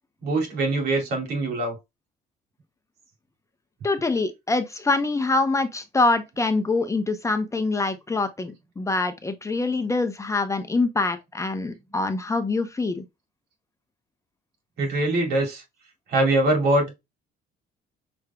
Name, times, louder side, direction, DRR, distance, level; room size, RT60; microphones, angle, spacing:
voice 1, 0.2-1.8 14.8-15.6 16.1-17.0, right 2 dB, 70° right, 2.5 m, -23 dB
voice 2, 3.8-13.0, left 3 dB, 15° left, 0.7 m, -25 dB
6.5 x 3.5 x 2.3 m
cardioid pair, 110°, 17 cm